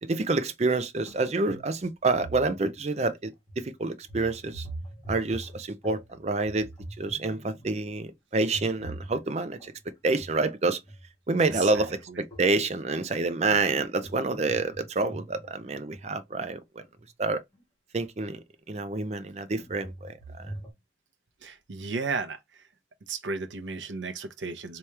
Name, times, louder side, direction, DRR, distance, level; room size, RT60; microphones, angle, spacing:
voice 1, 0.0-4.7 5.1-6.7 7.0-9.7 10.0-10.8 11.3-16.8 17.2-17.4 17.9-20.5, right 3 dB, 35° right, 0.5 m, -28 dB
sound 1, 1.1-1.2 1.5-3.0 3.5-3.7 4.0-6.1 6.4-7.9 8.5-9.7 10.1-10.5 10.8-12.9 13.5-16.1 17.0-17.1 17.6-17.7 19.1-20.7, right 1 dB, 20° left, 1.7 m, -43 dB
voice 2, 11.7-12.2 21.4-22.4 23.1-24.8, right 4 dB, 80° right, 0.6 m, -34 dB
3.4 x 2.9 x 3.2 m
head